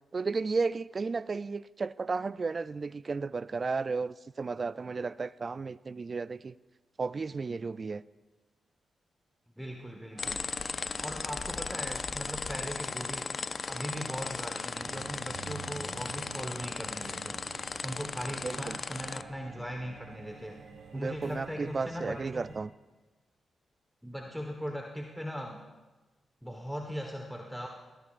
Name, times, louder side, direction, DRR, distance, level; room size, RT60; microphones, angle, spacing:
voice 1, 0.1-6.6 7.0-8.0 18.4-18.8 20.9-22.7, right 4 dB, 45° right, 17 dB, 0.3 m, -33 dB
voice 2, 9.6-10.5 11.0-13.4 13.7-17.4 17.8-20.6 20.9-22.6 24.0-25.6 26.4-27.7, equal, ahead, 1 dB, 1.3 m, -39 dB
Bowed string instrument, 10.1-21.3, right 4 dB, 65° right, 1.7 m, -53 dB
sound 1, 10.2-19.2, left 4 dB, 50° left, 0.4 m, -37 dB
sound 2, 14.7-22.6, right 5 dB, 85° right, 1.6 m, -50 dB
18.0 x 14.0 x 2.5 m, 1.2 s
cardioid pair, 60°, 0 cm